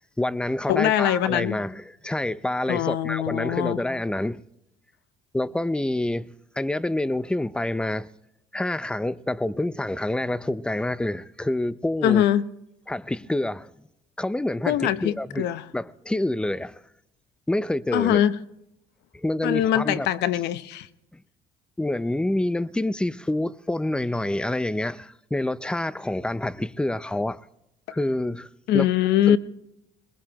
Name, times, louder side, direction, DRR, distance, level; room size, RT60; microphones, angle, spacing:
voice 1, 0.2-4.4 5.3-6.3 6.6-8.1 8.5-12.2 12.9-13.7 14.2-15.5 15.7-16.8 17.5-18.2 19.1-20.1 21.1-21.2 21.8-27.4 27.9-28.5 28.7-28.9 29.3-29.4, left 1 dB, 5° left, 0.5 m, -27 dB
voice 2, 0.7-1.6 2.7-3.8 12.0-12.5 14.7-15.6 17.9-18.4 19.4-20.9 28.7-29.4, left 11 dB, 85° left, 0.8 m, -22 dB
21.5 x 21.0 x 2.9 m
cardioid pair, 110°, 17 cm